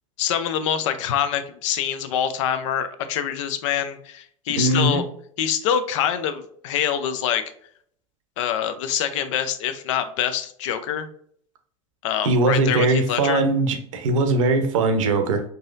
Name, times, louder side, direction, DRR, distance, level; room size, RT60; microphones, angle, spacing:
voice 1, 0.2-5.0 5.4-7.4 8.4-11.1 12.0-13.4, left 9 dB, 70° left, 10 dB, 0.5 m, -25 dB
voice 2, 4.5-5.0 12.2-15.4, right 2 dB, 75° right, 7 dB, 0.7 m, -20 dB
3.9 x 2.7 x 2.5 m, 0.62 s
hypercardioid pair, 90°, 17 cm